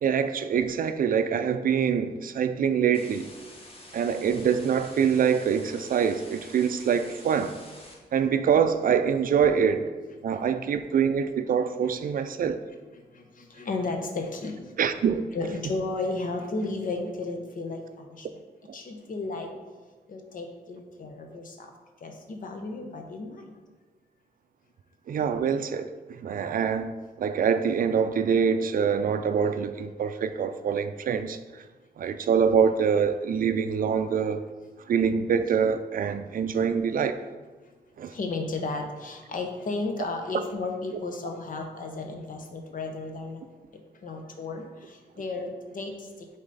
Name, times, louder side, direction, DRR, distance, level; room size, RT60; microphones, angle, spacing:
voice 1, 0.0-3.3 3.9-7.6 8.1-9.9 10.2-12.6 14.8-15.2 18.7-18.8 25.1-31.6 32.0-34.4 34.9-37.2 38.0-38.1 40.3-40.4, right 7 dB, 55° right, 10 dB, 0.4 m, -25 dB
sound 1, 2.9-7.9, left 1 dB, 35° left, 1.3 m, -48 dB
voice 2, 13.1-15.0 15.3-18.3 18.7-19.5 20.1-21.7 22.0-23.6 37.6-37.7 38.1-43.5 43.9-46.4, left 3 dB, 55° left, 4 dB, 0.9 m, -34 dB
7.3 x 4.1 x 4.0 m, 1.3 s
wide cardioid pair, 120°, 17 cm